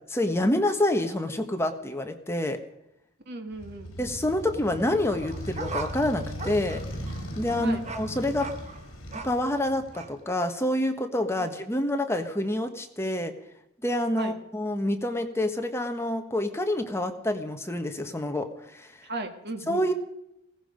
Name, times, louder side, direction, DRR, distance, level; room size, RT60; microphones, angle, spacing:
voice 1, 0.1-2.6 4.0-6.8 7.4-8.5 9.2-13.3 13.8-18.9 19.7-19.9, left 1 dB, 10° left, 5 dB, 1.2 m, -27 dB
voice 2, 3.3-3.9 7.6-7.8 11.4-11.5 14.2-14.4 19.0-19.9, right 2 dB, 50° right, 5 dB, 1.8 m, -36 dB
Motorcycle, 3.5-10.2, equal, 65° left, 3.8 m, -38 dB
sound 1, 5.1-9.5 9.9-10.1, right 3 dB, 30° right, 1.2 m, -39 dB
16.5 x 15.0 x 5.1 m, 0.81 s
head